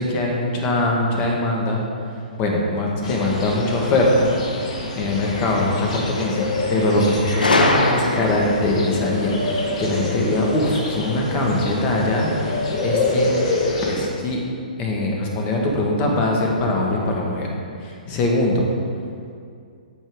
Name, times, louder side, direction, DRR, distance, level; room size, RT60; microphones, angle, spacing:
voice 1, 0.0-1.8 2.4-4.3 4.9-6.4 6.7-12.6 12.8-13.3 13.9-14.4 14.8-17.5 17.8-18.7, left 2 dB, 25° left, -1 dB, 1.7 m, -22 dB
sound 1, 3.0-14.1, left 2 dB, 50° left, 1.6 m, -26 dB
Gunshot gunfire, 7.4-8.6, left 2 dB, 70° left, 1.1 m, -19 dB
14.0 x 5.5 x 3.8 m, 2.3 s
figure-of-eight pair, 125°, 5 cm